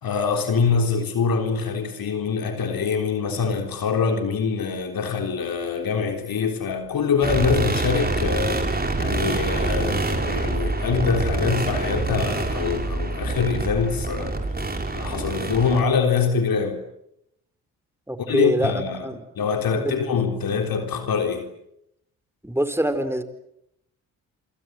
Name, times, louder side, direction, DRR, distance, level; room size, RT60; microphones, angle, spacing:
voice 1, 0.0-8.6 9.0-14.4 15.0-16.8 18.2-19.1 19.4-21.5, left 5 dB, 60° left, 3.9 m, -24 dB
sound 1, 7.2-15.8, right 2 dB, 25° right, 6.1 m, -26 dB
voice 2, 18.1-18.7 19.0-19.2 19.7-20.0 22.4-23.2, right 1 dB, 5° right, 4.5 m, -24 dB
28.0 x 25.5 x 7.9 m
hypercardioid pair, 45°, 39 cm